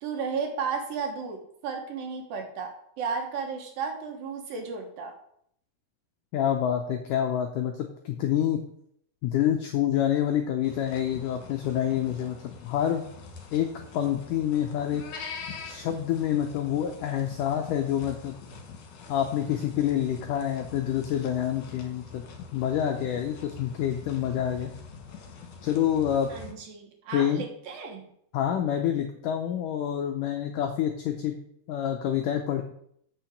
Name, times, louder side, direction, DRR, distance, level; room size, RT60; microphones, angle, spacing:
voice 1, 0.0-5.2 26.3-28.1, right 5 dB, 70° right, 3 dB, 2.7 m, -34 dB
voice 2, 6.3-8.6 9.2-13.1 13.5-15.1 15.6-18.3 19.1-22.2 22.5-24.7 25.6-26.3 27.1-27.4 28.3-31.4 31.7-32.6, left 10 dB, 90° left, 4 dB, 1.8 m, -27 dB
sound 1, 10.6-26.5, left 5 dB, 60° left, 2.4 m, -45 dB
6.7 x 5.9 x 7.1 m, 0.69 s
omnidirectional pair, 4.7 m